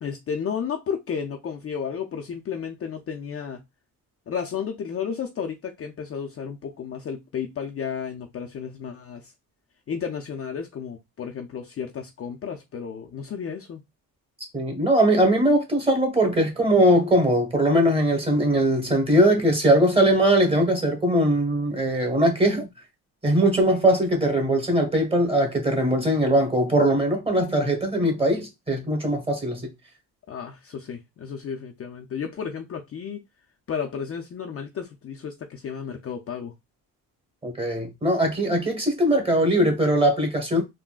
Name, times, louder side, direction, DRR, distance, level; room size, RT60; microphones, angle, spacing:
voice 1, 0.0-3.6 4.3-9.3 9.9-13.8 30.3-33.2 33.7-36.5, left 7 dB, 40° left, 0.5 m, -32 dB
voice 2, 14.5-22.7 23.2-29.7 37.4-40.6, right 1 dB, 15° right, 1.2 m, -21 dB
3.7 x 2.2 x 2.3 m
cardioid pair, 95°, 37 cm